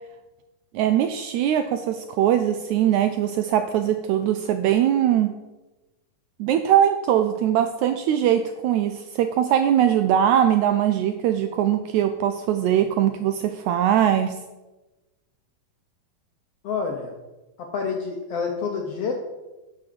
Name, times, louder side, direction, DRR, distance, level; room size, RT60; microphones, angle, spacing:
voice 1, 0.7-5.3 6.4-14.4, right 10 dB, 85° right, 9 dB, 1.7 m, -21 dB
voice 2, 16.6-17.1 17.6-19.1, left 5 dB, 70° left, 2 dB, 1.4 m, -28 dB
7.5 x 6.1 x 7.6 m, 1.1 s
omnidirectional pair, 3.8 m